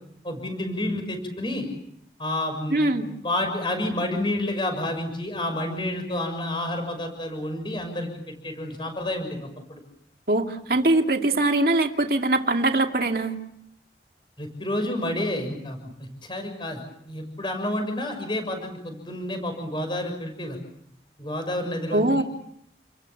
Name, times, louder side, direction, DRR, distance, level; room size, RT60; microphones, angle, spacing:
voice 1, 0.2-1.7 2.2-2.9 3.2-9.8 14.4-20.6 21.2-22.2, left 1 dB, 30° left, 6 dB, 6.5 m, -30 dB
voice 2, 2.7-3.1 10.3-13.4 21.9-22.2, right 2 dB, 55° right, 4 dB, 2.5 m, -22 dB
30.0 x 22.0 x 7.2 m, 0.73 s
head